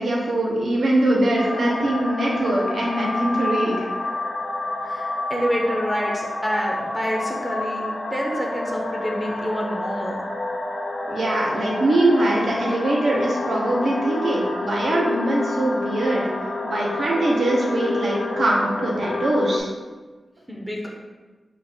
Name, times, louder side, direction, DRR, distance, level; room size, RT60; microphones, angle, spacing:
voice 1, 0.0-3.8 11.1-16.3 16.6-19.7, right 1 dB, 75° right, -3 dB, 0.9 m, -22 dB
sound 1, 1.4-19.6, left 2 dB, 60° left, 0.6 m, -29 dB
voice 2, 4.8-7.8 8.1-10.2 20.5-20.9, equal, ahead, -2 dB, 0.6 m, -27 dB
4.4 x 2.4 x 4.3 m, 1.3 s
wide cardioid pair, 125°, 0 cm